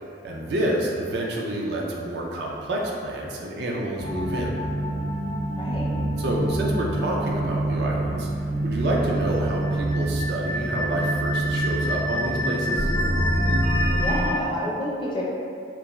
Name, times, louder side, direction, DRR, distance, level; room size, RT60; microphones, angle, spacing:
voice 1, 0.2-4.5 6.2-12.9, right 1 dB, 60° right, -2 dB, 0.4 m, -28 dB
sound 1, 4.0-14.3, right 1 dB, 90° right, 1.1 m, -25 dB
voice 2, 5.6-5.9 13.9-15.2, left 1 dB, 25° left, -5 dB, 0.4 m, -29 dB
2.3 x 2.3 x 2.9 m, 2.3 s
head